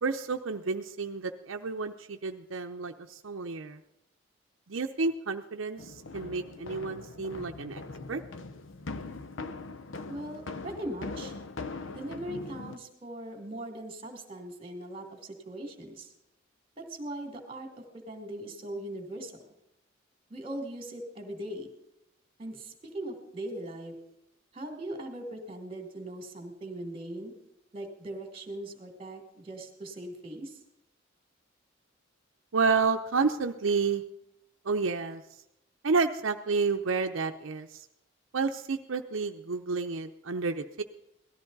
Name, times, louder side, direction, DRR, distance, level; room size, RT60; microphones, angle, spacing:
voice 1, 0.0-3.8 4.7-7.8 8.1-8.2 32.5-34.0 34.6-35.2 35.8-37.9 38.3-40.8, right 4 dB, 80° right, 5 dB, 0.7 m, -30 dB
sound 1, 5.8-12.8, left 3 dB, 75° left, 0.7 m, -41 dB
voice 2, 10.1-11.3 11.9-16.1 16.8-19.3 20.3-21.7 22.4-23.9 24.5-27.3 27.7-30.6, right 1 dB, 30° right, 4 dB, 2.3 m, -40 dB
18.0 x 13.0 x 4.0 m, 0.82 s
head